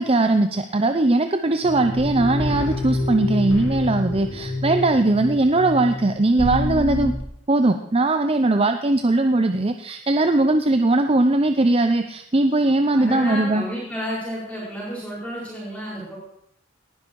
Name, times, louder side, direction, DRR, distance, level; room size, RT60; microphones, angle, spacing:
voice 1, 0.0-7.1 7.5-13.6, right 2 dB, 30° right, 7 dB, 0.6 m, -20 dB
sound 1, 1.6-7.1, left 1 dB, 90° left, 3.9 m, -27 dB
voice 2, 12.9-16.2, equal, 5° left, -7 dB, 4.8 m, -31 dB
18.5 x 11.0 x 4.7 m, 0.71 s
head